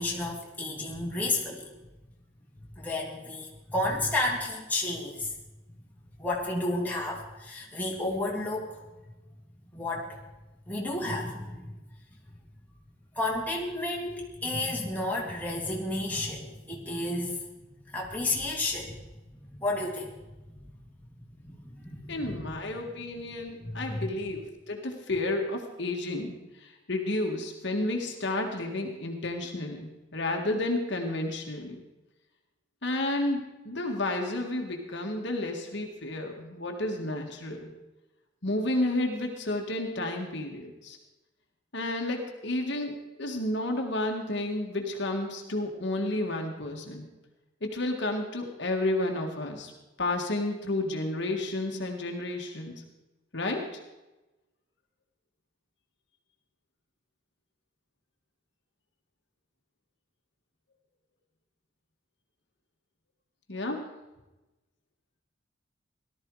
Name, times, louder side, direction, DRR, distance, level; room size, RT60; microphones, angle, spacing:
voice 1, 0.0-1.7 2.7-5.3 6.2-8.8 9.7-10.2 10.6-11.7 12.3-12.4 13.1-17.5 17.8-19.0 19.5-20.6 21.3-22.6 23.6-24.1, left 2 dB, 10° left, -3 dB, 2.9 m, -32 dB
voice 2, 22.1-31.8 32.8-37.7 38.4-41.0 41.7-47.1 47.6-49.7 50.0-52.7 53.3-53.8 63.5-63.8, left 2 dB, 60° left, 2 dB, 1.9 m, -31 dB
18.0 x 13.0 x 4.8 m, 1.1 s
head